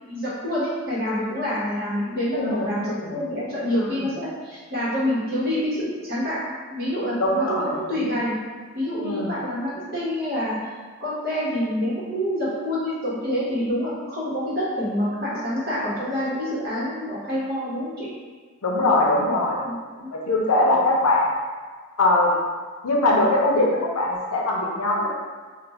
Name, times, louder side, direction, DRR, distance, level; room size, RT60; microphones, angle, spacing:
voice 1, 0.1-6.4 6.7-8.4 8.7-10.6 11.0-18.1 19.6-20.1, left 1 dB, 45° right, -9 dB, 1.1 m, -27 dB
voice 2, 2.3-3.1 3.8-4.0 7.2-7.7 8.0-8.1 9.0-9.3 18.6-19.6 20.1-21.3 22.0-22.3 22.8-25.1, left 2 dB, 85° left, -2 dB, 0.6 m, -21 dB
2.4 x 2.4 x 4.1 m, 1.5 s
head